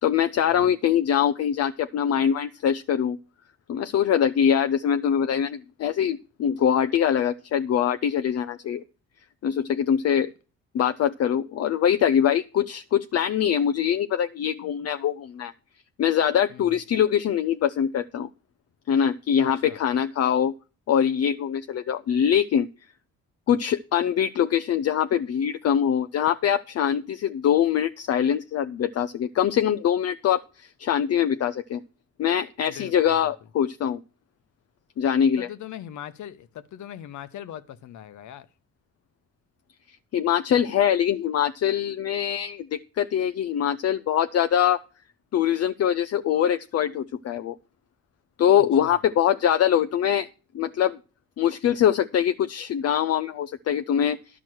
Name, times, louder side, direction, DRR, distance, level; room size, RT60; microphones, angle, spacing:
voice 1, 0.0-3.2 3.7-8.8 9.4-10.3 10.7-15.5 16.0-18.3 18.9-20.5 20.9-22.7 23.5-31.8 32.2-34.0 35.0-35.5 40.1-44.8 45.3-47.5 48.4-50.3 50.5-51.0 51.4-54.2, left 9 dB, 55° left, 0.6 m, -23 dB
voice 2, 16.5-16.8 19.4-19.8 32.7-33.3 35.4-38.5 48.5-49.0, left 11 dB, 75° left, 1.0 m, -41 dB
11.0 x 6.1 x 6.2 m
cardioid pair, 90°, 30 cm